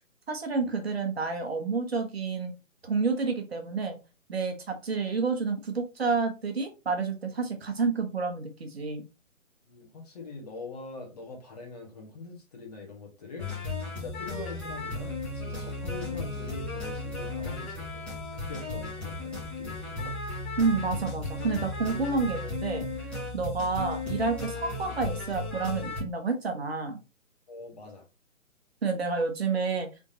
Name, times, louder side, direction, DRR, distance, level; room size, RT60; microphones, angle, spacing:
voice 1, 0.3-2.5 2.8-4.0 4.3-9.0 20.6-22.8 23.3-27.0 28.8-29.9, right 4 dB, 45° right, 4 dB, 1.3 m, -29 dB
voice 2, 9.6-13.5 13.8-18.1 18.3-20.2 27.5-28.0, left 3 dB, 30° left, 1 dB, 1.6 m, -43 dB
sound 1, 13.4-26.0, left 2 dB, ahead, 1.4 m, -35 dB
5.0 x 3.8 x 2.8 m, 0.29 s
figure-of-eight pair, 140°, 41 cm